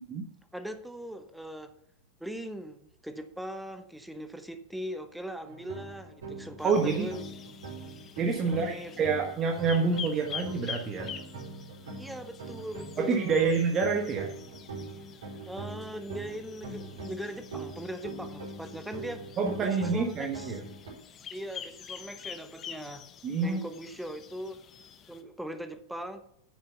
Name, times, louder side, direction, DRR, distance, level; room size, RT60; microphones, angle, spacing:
voice 1, 0.5-1.7 2.2-7.2 8.4-8.9 12.0-13.5 15.5-19.3 19.6-20.6 21.3-23.1 23.4-24.6 25.1-26.2, equal, ahead, 9 dB, 1.0 m, -40 dB
sound 1, 5.4-20.9, right 2 dB, 65° right, 4.1 m, -42 dB
sound 2, 6.6-25.2, left 8 dB, 30° left, 0.8 m, -47 dB
voice 2, 6.6-7.1 8.2-11.1 13.0-14.3 19.4-20.6 23.2-23.6, right 4 dB, 25° right, 2 dB, 1.3 m, -27 dB
9.9 x 7.2 x 5.6 m, 0.72 s
figure-of-eight pair, 90°, 0 cm